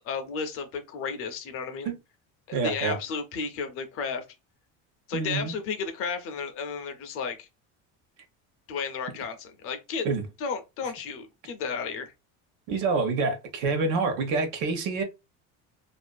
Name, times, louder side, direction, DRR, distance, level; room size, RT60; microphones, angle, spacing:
voice 1, 0.0-1.9 2.5-4.2 5.1-7.5 8.7-10.1 10.4-12.1, left 5 dB, 45° left, 0.5 m, -33 dB
voice 2, 2.5-3.0 5.1-5.5 10.0-10.2 12.7-15.0, right 4 dB, 65° right, 0.7 m, -27 dB
2.5 x 2.3 x 2.2 m
cardioid pair, 160°, 32 cm